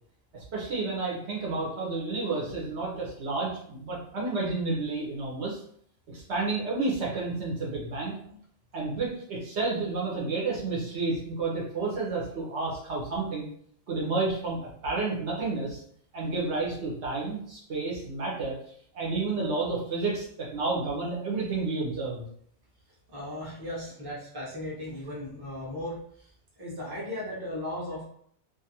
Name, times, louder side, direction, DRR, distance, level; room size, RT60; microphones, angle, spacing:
voice 1, 0.3-5.6 6.1-8.2 8.7-13.5 13.9-15.8 16.1-18.6 18.9-22.2, right 3 dB, 65° right, -3 dB, 1.0 m, -30 dB
voice 2, 23.1-26.3 26.6-28.1, left 1 dB, 20° right, -5 dB, 0.8 m, -37 dB
2.5 x 2.4 x 2.8 m, 0.64 s
omnidirectional pair, 1.3 m